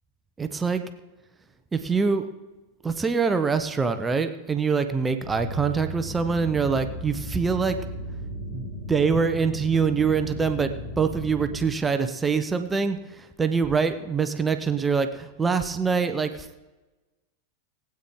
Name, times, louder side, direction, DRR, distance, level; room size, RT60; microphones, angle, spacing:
voice 1, 0.4-0.8 1.7-2.3 2.8-7.8 8.5-16.6, right 5 dB, 15° right, 8 dB, 0.8 m, -24 dB
sound 1, 5.2-11.7, left 1 dB, 45° left, 3.3 m, -36 dB
19.0 x 8.9 x 3.8 m, 1.1 s
figure-of-eight pair, 90°, 0 cm